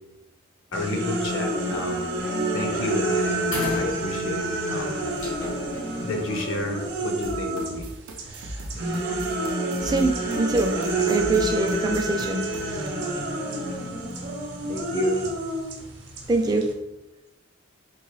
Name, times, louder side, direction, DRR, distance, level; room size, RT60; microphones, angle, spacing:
voice 1, 0.7-2.1 2.5-5.1 6.0-7.8 14.7-15.3, left 2 dB, 65° left, 3 dB, 0.6 m, -30 dB
sound 1, 0.7-7.8 8.2-16.7, right 2 dB, 55° right, 0.7 m, -28 dB
sound 2, 1.8-2.0 2.3-2.6 2.9-3.0 3.4-4.5 5.1-7.2, left 2 dB, 80° left, 1.2 m, -35 dB
sound 3, 7.2-12.6, right 1 dB, 90° right, 0.5 m, -38 dB
voice 2, 9.8-10.7 11.1-12.4 16.3-16.7, right 2 dB, 20° right, 3 dB, 0.3 m, -23 dB
3.8 x 2.7 x 3.1 m, 0.92 s
head